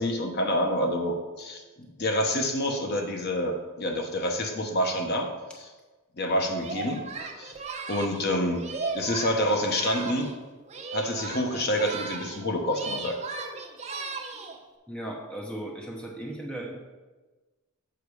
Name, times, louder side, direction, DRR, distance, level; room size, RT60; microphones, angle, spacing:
voice 1, 0.0-5.3 5.5-5.7 6.2-7.0 7.4-7.5 7.9-8.6 8.9-10.3 10.9-13.2, left 1 dB, 50° left, 3 dB, 0.9 m, -27 dB
Singing, 6.6-10.4 10.7-12.4 12.7-14.6, right 4 dB, 30° right, 0.7 m, -36 dB
voice 2, 14.9-16.7, right 1 dB, 5° left, 0 dB, 0.8 m, -36 dB
7.0 x 5.7 x 4.8 m, 1.2 s
head